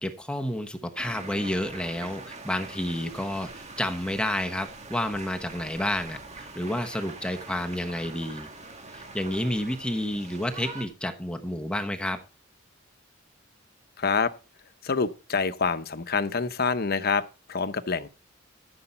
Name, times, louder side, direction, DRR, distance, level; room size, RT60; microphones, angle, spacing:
voice 1, 0.0-8.5 8.9-12.2, left 1 dB, 5° left, 1.0 m, -30 dB
sound 1, 1.0-10.9, right 3 dB, 35° right, 1.9 m, -43 dB
voice 2, 14.0-14.3 14.8-17.2 17.5-18.1, left 5 dB, 50° left, 0.9 m, -26 dB
14.0 x 7.0 x 4.4 m
head